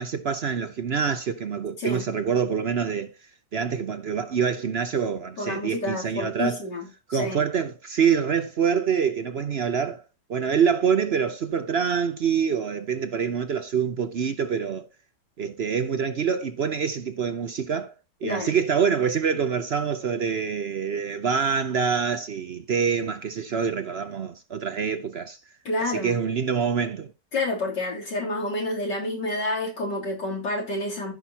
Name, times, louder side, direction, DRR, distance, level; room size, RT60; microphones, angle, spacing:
voice 1, 0.0-3.1 3.5-6.6 7.1-10.0 10.3-14.9 15.4-17.9 18.2-25.4 25.8-27.1, right 6 dB, 55° right, 0.7 m, -26 dB
voice 2, 5.4-7.5 18.2-18.6 25.7-26.2 27.3-31.1, left 2 dB, 80° left, 4.0 m, -29 dB
14.5 x 5.7 x 2.9 m
omnidirectional pair, 1.8 m